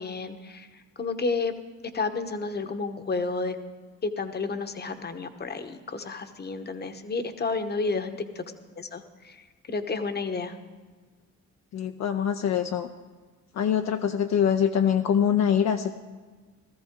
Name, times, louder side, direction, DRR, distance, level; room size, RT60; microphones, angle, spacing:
voice 1, 0.0-1.5 1.9-3.6 4.0-8.4 8.8-10.6, left 4 dB, 35° left, 8 dB, 1.0 m, -31 dB
voice 2, 11.7-12.9 13.5-15.9, left 8 dB, 60° left, 5 dB, 0.6 m, -24 dB
17.0 x 14.0 x 3.6 m, 1.4 s
cardioid pair, 90°, 30 cm